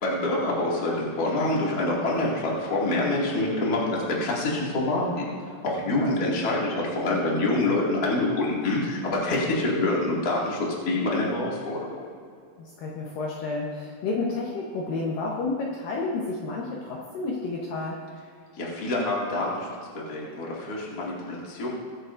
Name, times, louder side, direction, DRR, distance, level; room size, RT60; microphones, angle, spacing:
voice 1, 0.0-12.1 18.5-19.8 20.1-21.7, left 2 dB, 30° left, -4 dB, 2.0 m, -26 dB
voice 2, 5.9-6.3 12.6-18.0, left 3 dB, 65° left, -3 dB, 2.5 m, -31 dB
22.0 x 9.5 x 2.6 m, 2.2 s
omnidirectional pair, 4.8 m